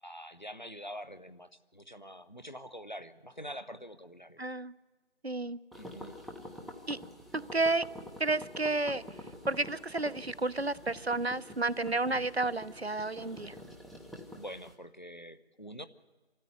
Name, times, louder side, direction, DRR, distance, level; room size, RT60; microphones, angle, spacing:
voice 1, 0.0-4.4 5.7-6.2 12.1-12.2 14.4-15.9, equal, 40° left, 12 dB, 0.8 m, -45 dB
voice 2, 4.4-4.7 5.2-5.6 6.9-7.0 7.3-7.8 8.2-9.0 9.5-13.5, right 2 dB, 65° right, 15 dB, 0.9 m, -31 dB
sound 1, 5.7-14.7, left 1 dB, ahead, 0.8 m, -47 dB
26.0 x 14.0 x 9.5 m, 1.3 s
figure-of-eight pair, 180°, 35 cm